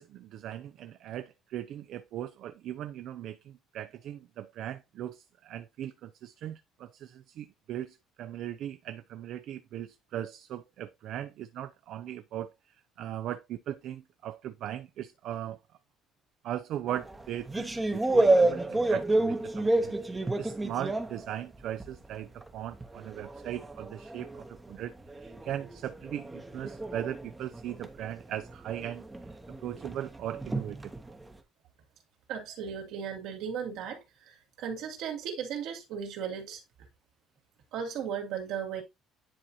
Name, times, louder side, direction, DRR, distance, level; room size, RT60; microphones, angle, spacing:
voice 1, 0.0-12.5 13.0-15.6 16.4-29.0 29.6-30.9, right 11 dB, 60° right, 0.5 m, -39 dB
sound 1, 16.9-22.1 22.4-31.3, right 2 dB, 10° right, 0.8 m, -30 dB
voice 2, 32.3-36.6 37.7-38.8, right 7 dB, 75° right, 2.6 m, -36 dB
10.0 x 4.1 x 2.8 m
cardioid pair, 155°, 0 cm